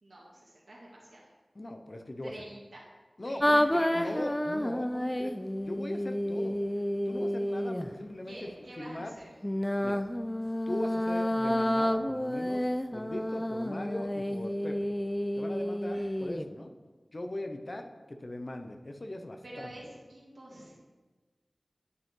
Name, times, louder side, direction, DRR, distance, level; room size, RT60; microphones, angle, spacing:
voice 1, 0.0-1.3 2.2-2.9 3.2-3.6 3.9-4.2 8.2-9.3 19.4-20.7, right 1 dB, 75° right, -5 dB, 1.9 m, -47 dB
voice 2, 1.5-2.3 3.2-5.3 5.7-6.6 7.1-8.5 8.8-9.1 9.8-10.0 10.7-12.6 12.9-14.9 15.4-16.7 17.1-19.7, left 1 dB, 45° left, 5 dB, 0.7 m, -39 dB
sound 1, 3.4-7.9 9.4-16.5, left 1 dB, 10° left, 0.4 m, -30 dB
11.0 x 5.3 x 3.7 m, 1.3 s
wide cardioid pair, 65°, 0 cm